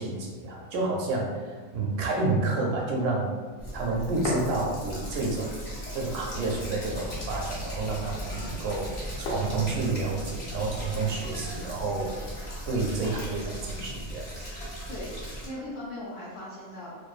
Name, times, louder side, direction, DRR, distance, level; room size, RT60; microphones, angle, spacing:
voice 1, 0.0-3.3 3.7-5.5 5.9-12.1 12.7-14.2, right 3 dB, 75° right, -2 dB, 0.9 m, -29 dB
sound 1, 3.5-5.3 5.7-11.6, left 2 dB, 90° left, 1.0 m, -40 dB
sound 2, 3.6-15.5, equal, 45° left, 0.6 m, -38 dB
sound 3, 6.9-15.0, equal, 60° right, 0.6 m, -43 dB
voice 2, 14.9-16.9, left 1 dB, 70° left, -8 dB, 0.9 m, -39 dB
2.5 x 2.2 x 2.3 m, 1.5 s
omnidirectional pair, 1.3 m